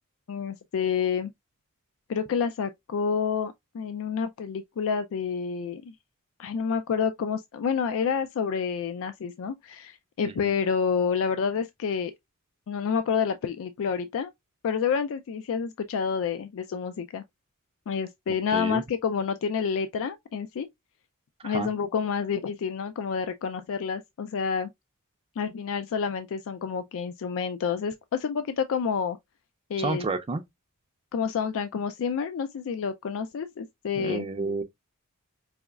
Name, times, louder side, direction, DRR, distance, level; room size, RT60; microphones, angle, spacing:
voice 1, 0.3-1.3 2.1-5.9 6.4-12.1 12.7-14.3 14.6-17.2 17.9-20.7 21.4-24.7 25.4-29.2 29.7-30.1 31.1-34.3, left 6 dB, 65° left, 0.4 m, -29 dB
voice 2, 18.5-18.8 21.4-21.7 29.8-30.4 34.0-34.6, right 3 dB, 25° right, 0.4 m, -30 dB
4.8 x 3.0 x 2.2 m
head